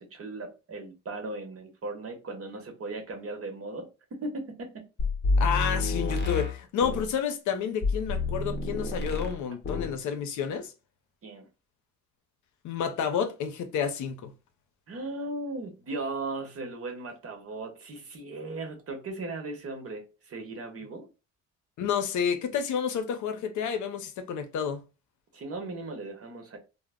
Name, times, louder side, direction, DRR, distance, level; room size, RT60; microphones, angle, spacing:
voice 1, 0.0-4.9 11.2-11.5 14.9-21.1 25.3-26.6, right 2 dB, 50° right, 1.0 m, -37 dB
sound 1, 5.0-7.1 7.8-9.4 9.6-10.0, left 3 dB, 35° left, 0.8 m, -28 dB
voice 2, 5.4-10.7 12.6-14.4 21.8-24.8, left 7 dB, 75° left, 0.6 m, -30 dB
2.1 x 2.1 x 3.5 m
cardioid pair, 90°, 30 cm